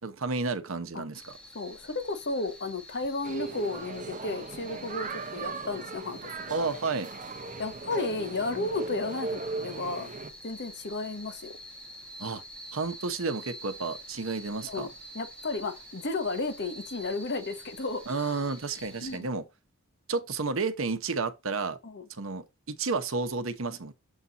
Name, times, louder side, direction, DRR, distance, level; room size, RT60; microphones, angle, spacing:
voice 1, 0.0-1.4 6.5-7.1 12.2-12.4 12.7-14.9 18.1-19.4 20.1-21.8 22.1-23.9, right 4 dB, 65° right, 0.9 m, -31 dB
sound 1, 1.1-19.2, equal, 5° left, 1.7 m, -47 dB
voice 2, 1.5-6.8 7.6-10.1 10.4-11.5 14.7-14.9 15.1-18.5 19.0-19.3 21.8-22.0, left 3 dB, 55° left, 1.2 m, -33 dB
sound 2, 3.2-10.3, right 4 dB, 35° right, 0.8 m, -38 dB
7.2 x 4.1 x 4.0 m
head